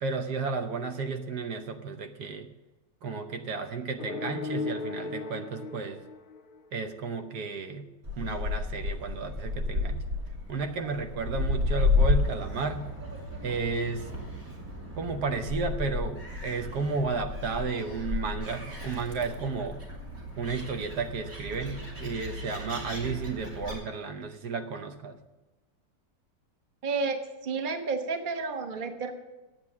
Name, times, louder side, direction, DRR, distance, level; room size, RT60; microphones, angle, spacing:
voice 1, 0.0-2.5 3.0-6.0 6.7-7.8 8.2-10.0 10.5-12.9 13.4-14.1 15.0-19.8 20.4-25.2, right 4 dB, 70° right, 7 dB, 1.4 m, -33 dB
sound 1, 4.0-6.9, left 4 dB, 65° left, 0.5 m, -36 dB
Gull seagull, 8.0-23.8, left 3 dB, 50° right, 3.3 m, -32 dB
voice 2, 26.8-27.2 27.4-29.1, right 4 dB, 35° right, 6 dB, 1.0 m, -31 dB
10.5 x 8.1 x 7.3 m, 1.1 s
omnidirectional pair, 1.9 m